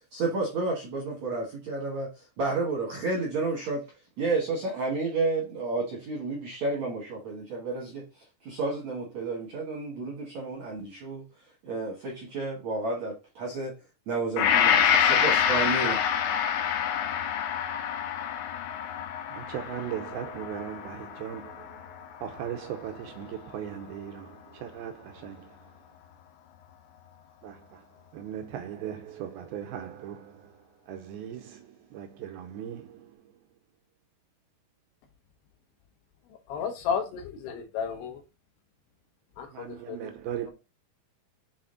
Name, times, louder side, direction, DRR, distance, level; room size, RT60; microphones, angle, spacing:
voice 1, 0.1-3.9 4.2-8.1 8.4-11.3 11.6-13.7 14.1-16.0, right 3 dB, 65° right, 1.7 m, -31 dB
Gong, 14.4-22.7 23.1-23.2, left 8 dB, 90° left, 3.2 m, -27 dB
voice 2, 19.3-21.8 22.2-25.6 27.4-27.8 28.1-30.5 30.9-33.1 39.5-40.5, right 9 dB, 85° right, 2.2 m, -38 dB
voice 3, 36.5-38.2 39.4-40.1, left 7 dB, 75° left, 2.9 m, -33 dB
7.3 x 4.2 x 3.8 m
omnidirectional pair, 5.1 m